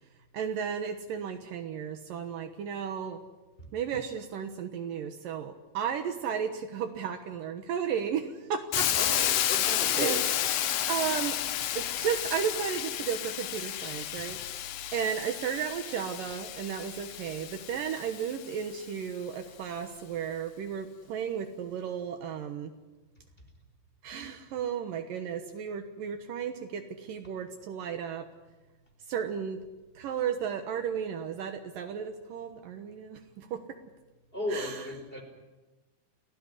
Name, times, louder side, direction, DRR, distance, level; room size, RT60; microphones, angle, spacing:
voice 1, 0.3-3.2 3.7-9.3 9.9-10.2 10.9-11.4 11.7-14.4 14.9-22.7 24.0-28.3 29.1-29.6 30.0-33.6 34.5-34.9, right 8 dB, 70° right, 8 dB, 2.7 m, -34 dB
Hiss, 8.7-18.6, left 12 dB, 85° left, 1.4 m, -31 dB
voice 2, 8.9-10.2 34.3-35.2, left 1 dB, 15° left, 4 dB, 4.6 m, -35 dB
29.5 x 18.0 x 9.9 m, 1.1 s
omnidirectional pair, 4.4 m